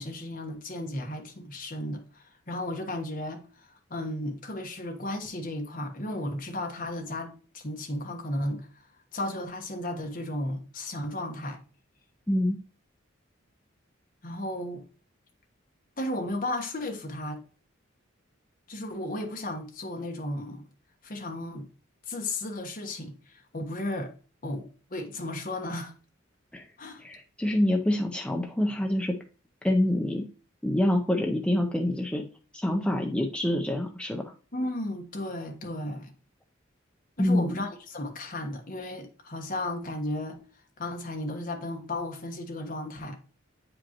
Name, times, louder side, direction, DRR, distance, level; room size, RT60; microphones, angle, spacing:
voice 1, 0.0-11.6 14.2-14.8 16.0-17.4 18.7-20.7 21.0-21.7 22.1-24.1 24.4-25.9 26.8-27.0 34.5-36.1 37.2-40.4 40.8-43.2, left 1 dB, 45° left, 1.3 m, -34 dB
voice 2, 12.3-12.6 26.5-26.7 27.0-29.2 29.6-30.3 30.6-32.3 32.5-34.3 37.2-37.6, left 1 dB, 5° left, 0.6 m, -26 dB
8.6 x 5.1 x 2.9 m
head